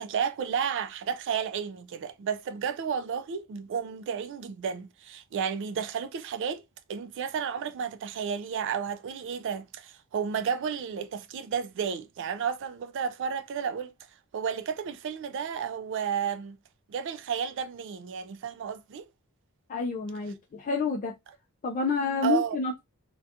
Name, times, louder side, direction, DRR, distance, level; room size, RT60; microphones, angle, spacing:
voice 1, 0.0-6.6 6.9-13.9 14.3-16.6 16.9-19.1 22.2-22.6, right 7 dB, 55° right, 0.3 m, -32 dB
voice 2, 19.7-21.1 21.6-22.8, left 4 dB, 35° left, 0.3 m, -29 dB
2.7 x 2.2 x 2.5 m
head